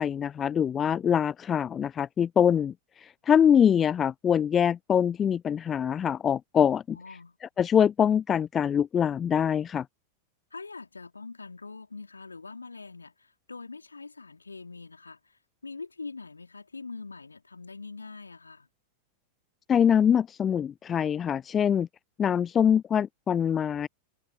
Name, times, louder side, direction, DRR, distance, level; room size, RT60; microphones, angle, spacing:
voice 1, 0.0-2.7 3.3-7.0 7.6-9.8 19.7-21.9 22.2-23.9, left 8 dB, 25° left, 0.4 m, -24 dB
voice 2, 6.9-7.4 10.5-18.7, left 4 dB, 80° left, 3.7 m, -43 dB
open air
figure-of-eight pair, 90°, 0 cm